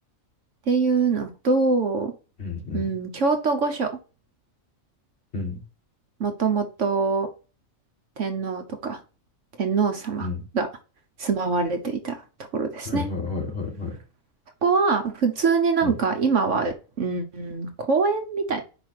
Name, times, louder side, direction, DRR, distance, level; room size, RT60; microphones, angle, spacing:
voice 1, 0.7-2.1 2.7-3.9 6.2-7.3 8.2-9.0 9.6-10.3 10.5-10.7 11.2-12.2 12.5-13.1 14.6-18.6, right 4 dB, 65° right, 1.3 m, -24 dB
voice 2, 2.4-2.9 5.3-5.6 10.2-10.5 12.9-14.0 15.8-16.0, left 4 dB, 50° left, 2.2 m, -31 dB
5.5 x 5.1 x 6.4 m
omnidirectional pair, 1.4 m